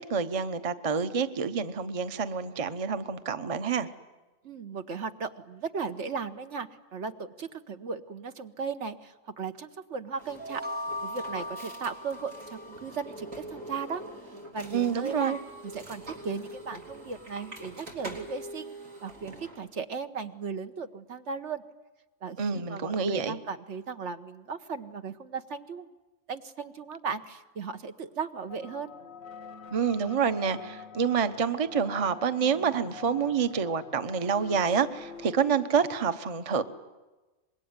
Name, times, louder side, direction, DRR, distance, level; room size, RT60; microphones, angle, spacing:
voice 1, 0.0-3.9 14.7-15.4 22.4-23.4 29.7-36.6, right 6 dB, 30° right, 10 dB, 0.9 m, -28 dB
voice 2, 4.4-10.6 11.0-14.0 14.5-15.3 15.6-18.7 19.0-21.6 22.2-25.9 26.3-28.9, right 5 dB, 60° right, 8 dB, 1.4 m, -36 dB
sound 1, 10.2-19.6, right 1 dB, 80° right, 4.3 m, -44 dB
sound 2, 10.4-13.2, left 1 dB, 10° right, 0.5 m, -38 dB
sound 3, 28.5-35.6, left 6 dB, 90° left, 1.6 m, -45 dB
25.5 x 21.5 x 9.6 m, 1.2 s
omnidirectional pair, 1.4 m